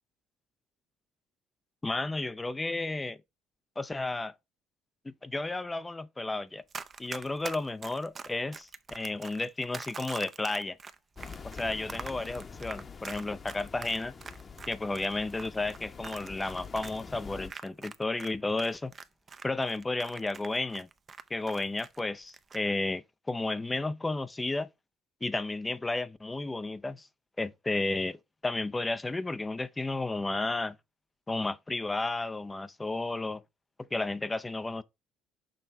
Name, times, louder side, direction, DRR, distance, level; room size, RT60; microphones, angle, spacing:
voice 1, 1.8-3.2 3.8-4.3 5.0-6.6 7.0-10.8 11.6-14.1 14.7-18.9 19.4-20.9 21.3-24.7 25.2-27.1 27.4-28.2 28.4-30.8 31.3-33.4 33.9-34.8, left 2 dB, 20° left, 0.5 m, -32 dB
Run, 6.7-18.3 18.6-22.0 22.3-22.6, right 5 dB, 40° right, 0.6 m, -43 dB
sound 1, 11.2-17.5, left 5 dB, 35° left, 1.0 m, -46 dB
6.3 x 3.2 x 5.4 m
hypercardioid pair, 60°, 0 cm